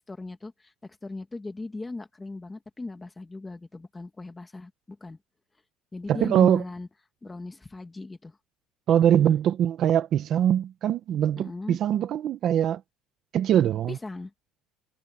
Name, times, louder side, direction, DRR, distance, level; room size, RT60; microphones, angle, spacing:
voice 1, 0.1-5.2 5.9-6.9 7.2-8.4 9.1-9.4 11.4-11.8 13.9-14.3, left 3 dB, 10° left, 1.7 m, -38 dB
voice 2, 6.1-6.6 8.9-12.8 13.3-14.0, right 10 dB, 35° right, 0.8 m, -22 dB
cardioid pair, 175°, 0 cm